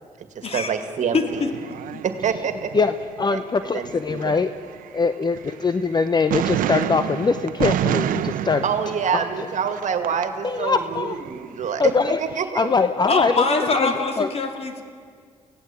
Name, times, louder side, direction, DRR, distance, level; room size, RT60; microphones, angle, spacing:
voice 1, 0.4-1.4 2.0-2.8 3.3-3.4 3.7-4.4 8.6-11.8 12.2-12.7, right 7 dB, 60° right, 8 dB, 2.1 m, -26 dB
voice 2, 1.1-1.5 1.9-2.0 13.1-14.8, left 3 dB, 45° left, 5 dB, 2.8 m, -23 dB
sound 1, 1.3-3.4 3.7-6.0 6.3-10.3 10.6-12.3, right 11 dB, 85° right, 0.8 m, -29 dB
voice 3, 2.7-4.6 4.9-8.7 9.1-9.5 10.4-11.2 11.8-14.3, left 4 dB, 30° left, 11 dB, 0.8 m, -23 dB
24.0 x 16.5 x 8.6 m, 2.1 s
cardioid pair, 85°, 14 cm